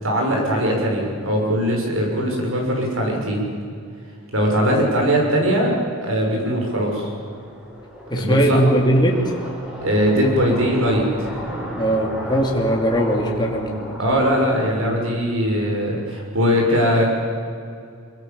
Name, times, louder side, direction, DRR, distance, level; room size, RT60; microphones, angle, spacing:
voice 1, 0.0-3.4 4.3-5.8 6.0-7.1 8.2-8.6 9.8-11.0 14.0-17.2, equal, 65° right, 0 dB, 6.9 m, -20 dB
sound 1, 6.4-14.7, equal, 5° right, 4.7 m, -35 dB
voice 2, 8.1-9.3 11.8-14.0, right 1 dB, 20° left, 0 dB, 3.1 m, -20 dB
24.0 x 23.5 x 7.3 m, 2.3 s
head